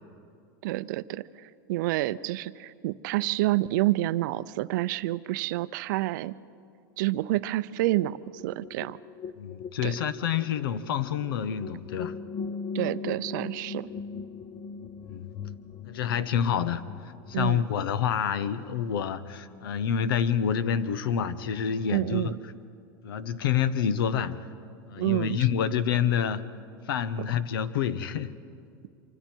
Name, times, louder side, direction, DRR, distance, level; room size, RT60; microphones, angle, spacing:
voice 1, 0.6-6.3 7.0-9.0 9.8-10.0 12.7-13.9 17.3-17.7 21.9-22.4 25.0-25.4, right 16 dB, 60° right, 16 dB, 0.5 m, -28 dB
sound 1, 7.9-17.5, left 5 dB, 20° left, 0.6 m, -40 dB
voice 2, 9.4-12.2 15.0-15.3 15.8-22.3 23.0-24.5 24.9-26.5 26.9-28.3, left 8 dB, 85° left, 15 dB, 1.0 m, -28 dB
26.0 x 24.5 x 4.5 m, 2.5 s
supercardioid pair, 155°, 12 cm